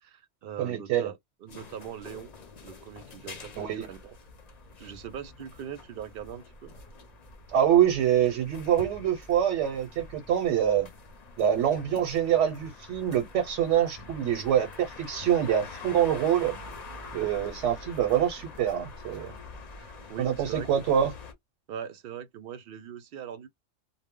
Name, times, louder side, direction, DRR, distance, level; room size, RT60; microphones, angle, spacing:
voice 1, 0.0-1.2 1.4-2.3 2.6-4.2 4.8-6.7 19.8-20.7 21.7-23.5, right 8 dB, 60° right, 0.7 m, -41 dB
voice 2, 0.6-1.1 3.6-3.9 7.5-10.9 11.4-16.5 17.1-19.3 20.2-21.1, right 10 dB, 90° right, 0.9 m, -25 dB
sound 1, 1.5-21.3, left 3 dB, 45° left, 0.6 m, -46 dB
2.0 x 2.0 x 3.5 m
omnidirectional pair, 1.2 m